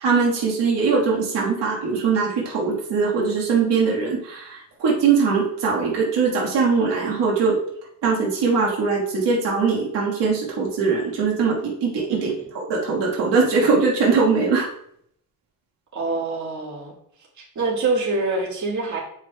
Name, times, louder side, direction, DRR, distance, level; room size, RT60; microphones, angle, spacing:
voice 1, 0.0-7.6 8.0-14.7, right 5 dB, 85° right, -4 dB, 1.6 m, -21 dB
voice 2, 15.9-16.9 17.4-19.0, right 3 dB, 45° right, -5 dB, 1.8 m, -25 dB
8.5 x 4.9 x 2.3 m, 0.69 s
cardioid pair, 120°, 41 cm